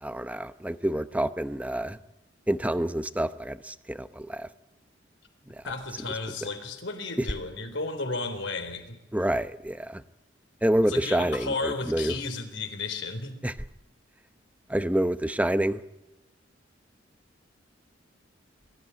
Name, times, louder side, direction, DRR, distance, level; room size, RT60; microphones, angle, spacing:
voice 1, 0.0-2.0 2.5-4.5 9.1-10.0 10.6-12.1 13.4-13.5 14.7-15.8, right 1 dB, 10° right, 12 dB, 0.8 m, -27 dB
voice 2, 5.6-9.0 10.9-13.4, left 3 dB, 75° left, 6 dB, 3.9 m, -33 dB
22.0 x 14.5 x 9.5 m, 0.97 s
head